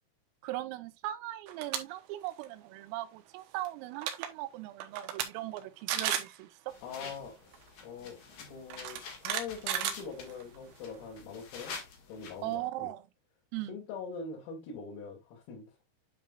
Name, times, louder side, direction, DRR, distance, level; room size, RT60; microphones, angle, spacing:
voice 1, 0.4-6.5 12.4-13.0 13.5-13.7, right 15 dB, 90° right, 3.4 m, -39 dB
sound 1, 1.5-1.8 2.2-2.5 3.7-3.8 4.0-4.3 4.8-5.3 5.6-5.7 5.9-6.3 7.5-7.6 8.7-10.6, right 10 dB, 75° right, 2.7 m, -33 dB
sound 2, 6.7-12.6, left 5 dB, 60° left, 2.3 m, -48 dB
voice 2, 6.8-7.5 7.8-11.7 12.1-12.9 13.7-15.7, left 5 dB, 90° left, 5.0 m, -43 dB
9.9 x 5.6 x 2.4 m
omnidirectional pair, 6.0 m